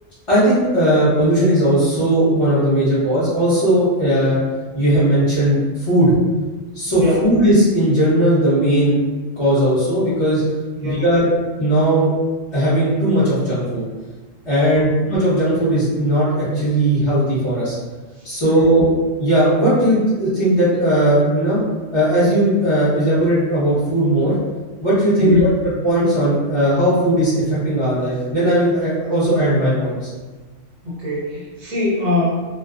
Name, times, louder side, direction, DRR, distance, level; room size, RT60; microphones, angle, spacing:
voice 1, 0.3-4.4 4.7-6.1 6.7-9.0 9.4-10.4 10.8-11.3 11.6-12.1 12.5-13.8 14.4-17.7 18.2-21.6 21.9-24.3 24.8-25.4 25.8-30.1, right 1 dB, 30° left, -14 dB, 0.8 m, -17 dB
voice 2, 10.7-11.1 14.7-14.9 18.2-18.6 25.2-25.6 30.8-32.3, left 1 dB, 40° right, -7 dB, 0.5 m, -22 dB
2.4 x 2.2 x 2.4 m, 1.3 s
omnidirectional pair, 1.3 m